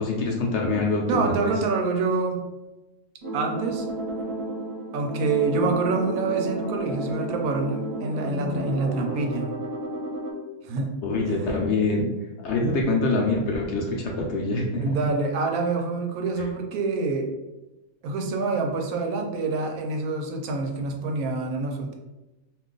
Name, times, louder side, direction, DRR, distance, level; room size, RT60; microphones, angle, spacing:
voice 1, 0.0-1.5 7.0-7.3 9.1-9.2 11.0-12.1 12.4-15.0, left 2 dB, 65° left, -1 dB, 0.7 m, -25 dB
voice 2, 1.0-2.4 3.3-3.9 4.9-9.5 10.6-10.9 11.3-11.6 14.8-17.3 18.0-21.9, right 3 dB, 85° right, 2 dB, 1.0 m, -26 dB
sound 1, 3.2-10.3, right 1 dB, 25° right, 1.0 m, -32 dB
2.5 x 2.3 x 3.7 m, 1.1 s
omnidirectional pair, 1.5 m